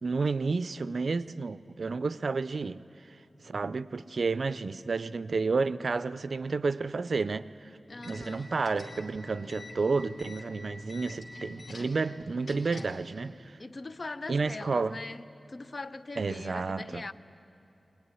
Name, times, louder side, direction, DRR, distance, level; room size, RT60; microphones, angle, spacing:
voice 1, 0.0-3.2 3.4-7.7 8.0-13.6 14.3-15.0 16.2-17.0, right 4 dB, 75° right, 0.5 m, -31 dB
sound 1, 7.9-13.1, left 2 dB, 80° left, 2.7 m, -46 dB
voice 2, 7.9-8.5 12.7-13.0 13.6-15.2 15.5-17.1, left 3 dB, 50° left, 0.7 m, -41 dB
21.5 x 21.0 x 9.8 m
wide cardioid pair, 85°, 0 cm